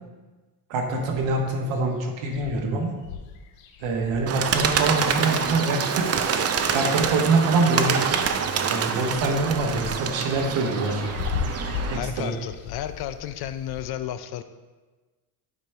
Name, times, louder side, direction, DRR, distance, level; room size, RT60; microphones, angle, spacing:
voice 1, 0.7-2.9 3.8-6.1 6.7-8.0 8.7-11.0 11.9-12.3, right 3 dB, 70° right, 1 dB, 1.4 m, -24 dB
sound 1, 1.0-1.6 2.0-2.1 2.3-6.3 6.8-7.7 8.0-13.8, left 6 dB, 90° left, 0.7 m, -37 dB
Bird, 4.3-12.0, right 6 dB, 30° right, 0.5 m, -26 dB
voice 2, 11.9-14.4, left 11 dB, 55° left, 11 dB, 0.5 m, -32 dB
8.3 x 4.4 x 3.3 m, 1.3 s
supercardioid pair, 85°, 48 cm